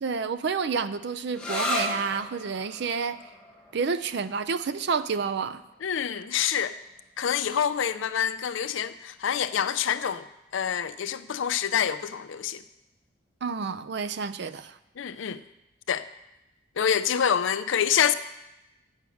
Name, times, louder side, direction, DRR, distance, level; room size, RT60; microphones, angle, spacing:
voice 1, 0.0-3.2 3.7-5.6 13.4-14.8, right 5 dB, 55° right, 0.4 m, -29 dB
sound 1, 1.3-8.7, left 1 dB, 5° left, 1.0 m, -37 dB
voice 2, 5.8-6.8 7.2-10.2 10.5-12.6 15.0-15.4 15.9-16.1 16.8-18.1, left 8 dB, 70° left, 0.4 m, -26 dB
8.2 x 6.3 x 7.0 m
head